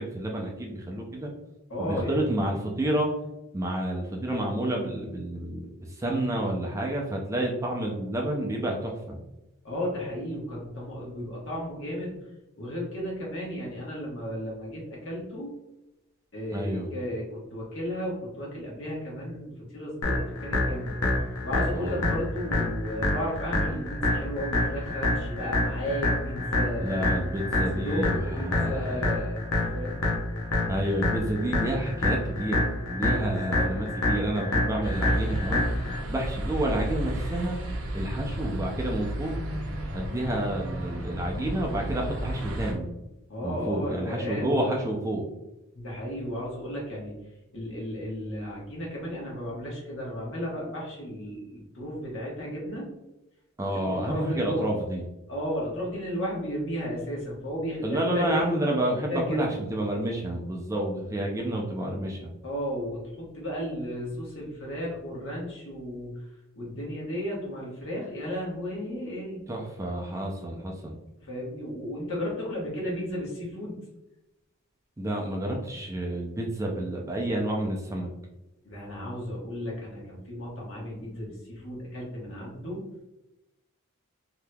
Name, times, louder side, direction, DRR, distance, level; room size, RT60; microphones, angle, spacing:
voice 1, 0.0-1.3 1.8-3.1 3.5-5.7 6.0-9.2 16.5-16.9 21.7-22.0 26.8-29.1 30.7-35.6 36.1-37.6 37.9-39.3 39.9-42.9 43.4-45.2 53.6-55.0 57.8-62.3 69.5-71.0 75.0-78.1, right 1 dB, 15° right, -1 dB, 0.4 m, -29 dB
voice 2, 1.7-2.5 9.6-12.2 12.6-15.5 16.3-21.0 21.4-27.1 27.7-29.4 29.7-30.1 33.5-33.7 43.3-44.5 45.7-47.2 47.5-52.9 53.7-54.6 55.3-58.4 59.1-59.6 62.4-66.2 66.5-69.4 71.2-73.8 78.6-82.9, equal, 65° left, -4 dB, 1.3 m, -34 dB
sound 1, 20.0-36.0, left 2 dB, 85° left, 0.7 m, -27 dB
sound 2, 34.8-42.7, right 1 dB, 80° right, 0.7 m, -33 dB
3.4 x 2.8 x 2.2 m, 0.93 s
head